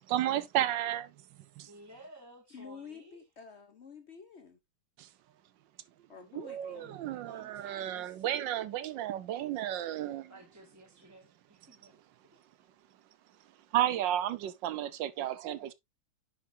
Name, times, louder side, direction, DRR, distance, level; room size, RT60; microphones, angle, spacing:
voice 1, 0.1-1.1 1.6-1.7 5.0-5.1 6.3-10.3 13.7-15.7, right 12 dB, 70° right, 1.2 m, -32 dB
voice 2, 1.7-3.2 6.7-6.9 7.2-8.7 10.3-12.0 12.3-12.4, right 1 dB, 10° right, 1.4 m, -55 dB
voice 3, 2.5-4.6 6.1-7.1, left 6 dB, 70° left, 0.6 m, -49 dB
10.0 x 5.4 x 2.6 m
omnidirectional pair, 2.4 m